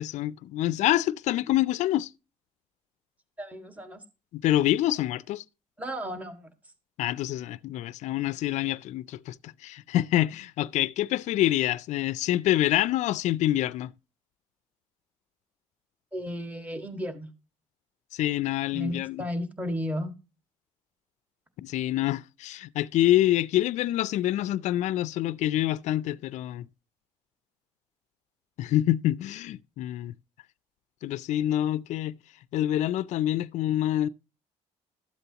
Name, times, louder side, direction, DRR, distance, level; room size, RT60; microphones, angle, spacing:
voice 1, 0.0-2.1 4.3-5.4 7.0-13.9 18.1-19.2 21.6-26.7 28.6-30.1 31.0-32.2 32.5-34.1, left 14 dB, 70° left, 0.4 m, -26 dB
voice 2, 3.4-4.0 5.8-6.5 16.1-17.3 18.7-20.1, equal, 10° right, 1.7 m, -34 dB
13.0 x 7.9 x 2.9 m
cardioid pair, 90°, 13 cm